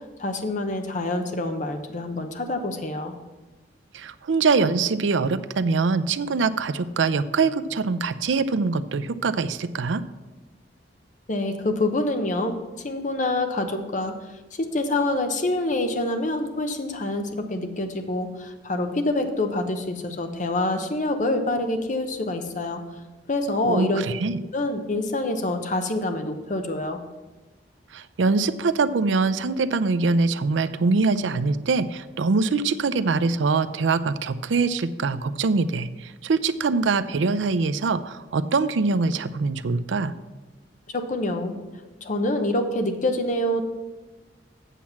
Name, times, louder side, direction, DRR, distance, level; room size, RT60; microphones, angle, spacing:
voice 1, 0.2-3.1 11.3-12.6 12.8-14.1 14.5-22.8 23.3-24.0 24.5-27.0 40.9-41.6 42.0-43.6, left 2 dB, 45° left, 6 dB, 0.9 m, -26 dB
voice 2, 3.9-10.0 23.6-24.4 27.9-40.1, right 4 dB, 90° right, 13 dB, 0.5 m, -23 dB
8.3 x 7.2 x 5.8 m, 1.2 s
head